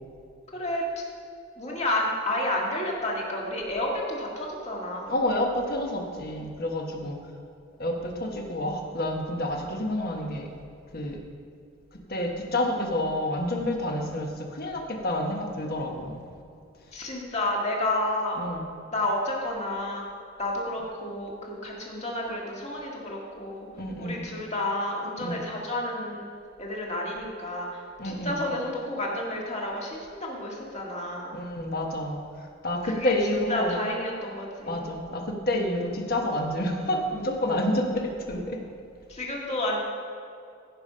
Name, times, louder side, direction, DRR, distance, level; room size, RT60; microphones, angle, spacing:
voice 1, 0.5-0.8 1.6-5.1 16.9-18.4 18.9-20.1 20.4-23.7 24.0-26.2 26.6-31.4 32.8-34.9 39.1-39.8, left 1 dB, 35° left, -2 dB, 1.9 m, -30 dB
voice 2, 5.1-7.2 7.8-10.5 10.9-11.2 12.1-16.2 18.4-18.6 23.8-24.2 25.2-25.4 28.0-28.4 31.3-32.2 32.6-33.7 34.6-38.6, left 1 dB, 50° left, 2 dB, 1.3 m, -29 dB
15.5 x 5.3 x 5.6 m, 2.5 s
head